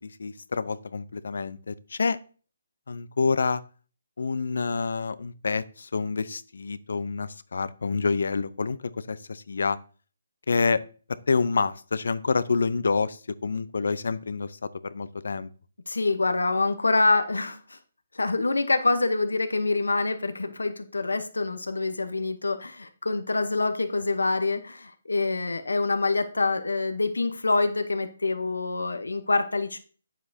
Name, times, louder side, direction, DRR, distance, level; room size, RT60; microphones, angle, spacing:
voice 1, 0.0-2.2 2.9-3.6 4.2-9.8 10.5-10.8 11.3-15.5, left 4 dB, 70° left, 16 dB, 0.6 m, -27 dB
voice 2, 15.9-17.8 18.1-29.8, left 3 dB, 90° left, 8 dB, 1.0 m, -26 dB
9.3 x 7.4 x 2.8 m, 0.38 s
figure-of-eight pair, 150°, 0 cm